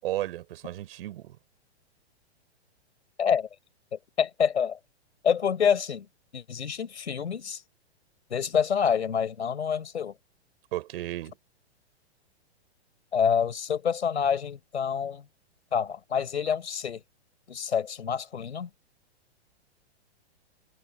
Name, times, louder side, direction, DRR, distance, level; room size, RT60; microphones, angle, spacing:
voice 1, 0.0-1.4 10.7-11.3, right 14 dB, 60° right, 5.5 m, -34 dB
voice 2, 3.9-4.8 5.2-6.1 6.3-7.6 8.3-10.1 13.1-15.2 15.7-17.0 17.5-18.7, left 7 dB, 80° left, 5.4 m, -27 dB
hypercardioid pair, 120°, 33 cm